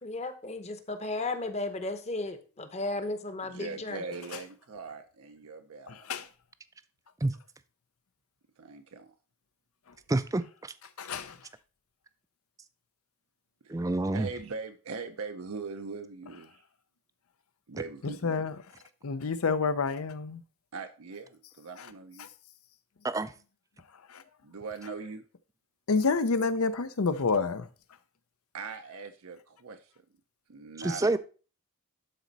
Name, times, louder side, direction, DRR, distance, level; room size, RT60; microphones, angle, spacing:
voice 1, 0.0-4.0, left 2 dB, 30° left, 0.8 m, -34 dB
voice 2, 3.4-6.1 8.6-9.1 13.6-13.7 14.1-16.6 17.7-18.4 20.7-22.3 24.4-25.2 28.5-29.9 30.5-31.2, right 4 dB, 85° right, 0.7 m, -41 dB
voice 3, 5.9-6.3 11.0-11.4 18.0-18.5 19.0-20.4 24.1-24.2 25.9-27.7, left 4 dB, 90° left, 0.7 m, -28 dB
voice 4, 10.1-10.7 13.7-14.3 23.0-23.3 30.8-31.2, right 2 dB, 15° right, 0.3 m, -28 dB
12.0 x 4.2 x 4.0 m
head